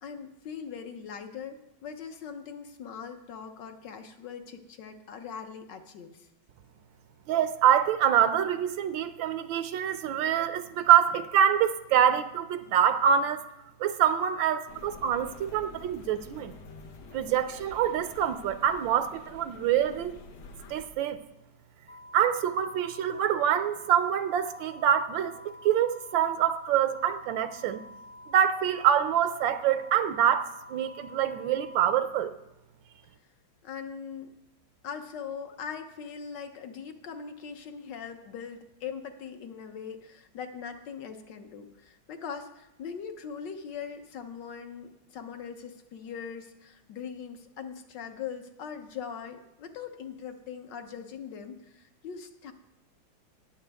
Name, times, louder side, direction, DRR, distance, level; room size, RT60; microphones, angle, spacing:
voice 1, 0.0-6.3 33.6-34.4 34.8-52.5, left 7 dB, 65° left, 6 dB, 1.4 m, -41 dB
voice 2, 7.3-13.4 13.8-16.5 17.1-20.2 20.7-21.2 22.1-27.8 28.3-32.3, right 9 dB, 75° right, 11 dB, 1.3 m, -25 dB
sound 1, 14.7-20.9, left 4 dB, 90° left, 1.9 m, -48 dB
sound 2, 21.9-31.9, left 2 dB, 50° left, 1.0 m, -49 dB
19.0 x 7.0 x 3.4 m, 0.89 s
omnidirectional pair, 2.2 m